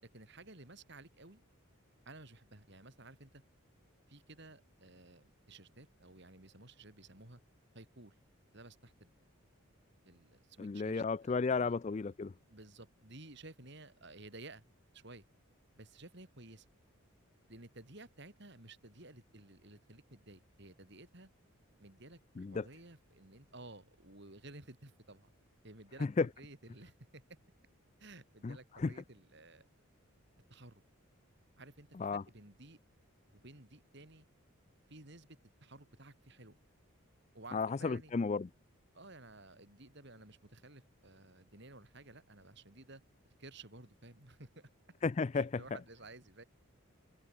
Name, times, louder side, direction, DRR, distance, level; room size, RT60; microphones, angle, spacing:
voice 1, 0.0-1.4 2.0-3.4 4.1-7.4 7.7-8.2 8.5-9.2 10.0-11.7 12.5-14.6 14.9-15.2 15.8-16.7 17.5-21.3 21.8-25.3 25.6-27.2 28.0-29.7 30.5-30.8 31.6-32.8 33.3-34.2 34.9-36.6 37.3-38.1 38.9-43.0 43.4-44.7 45.3-46.4, right 2 dB, 50° right, 3.4 m, -54 dB
voice 2, 10.6-12.3 22.4-22.6 26.0-26.3 28.4-28.9 32.0-32.2 37.5-38.5 45.0-45.6, left 4 dB, 30° left, 0.3 m, -33 dB
head